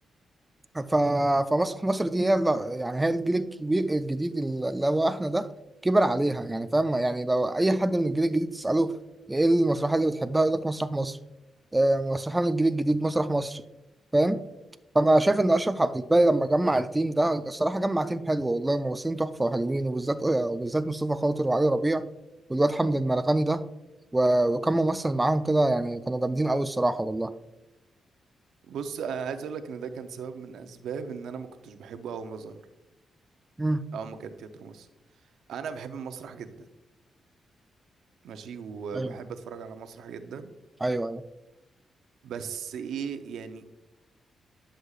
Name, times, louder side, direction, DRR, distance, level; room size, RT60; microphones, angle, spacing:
voice 1, 0.7-5.5 5.8-8.9 9.3-11.2 11.7-13.6 14.1-14.4 14.9-22.1 22.5-23.6 24.1-27.3 33.6-33.8 38.9-39.1 40.8-41.2, right 1 dB, 15° right, 11 dB, 0.3 m, -25 dB
voice 2, 28.7-32.6 33.9-34.9 35.5-36.6 38.2-40.5 42.2-43.7, right 6 dB, 85° right, 8 dB, 0.6 m, -37 dB
9.7 x 6.3 x 2.4 m, 0.95 s
cardioid pair, 100°, 0 cm